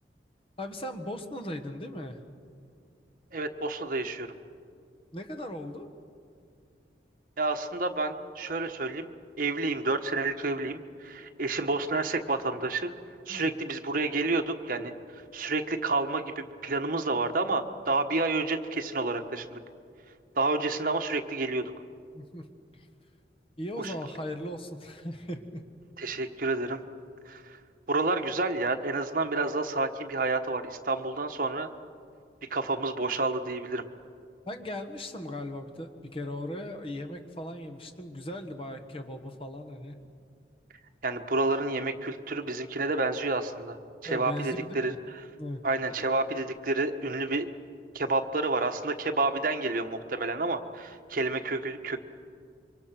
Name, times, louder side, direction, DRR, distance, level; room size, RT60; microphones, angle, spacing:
voice 1, 0.6-2.2 5.1-5.9 13.3-13.6 22.1-22.4 22.7-22.9 23.6-25.6 34.5-40.0 44.0-45.0 45.4-45.6, left 1 dB, 30° left, 7 dB, 1.4 m, -38 dB
voice 2, 3.3-4.3 7.4-9.1 9.4-12.9 13.3-14.9 15.3-19.6 20.3-21.6 23.8-23.9 26.0-26.8 27.3-27.6 27.9-31.7 32.5-33.8 41.0-43.8 44.0-45.3 45.6-47.5 47.9-52.0, right 3 dB, 50° right, 5 dB, 1.3 m, -29 dB
27.5 x 24.5 x 6.0 m, 2.3 s
head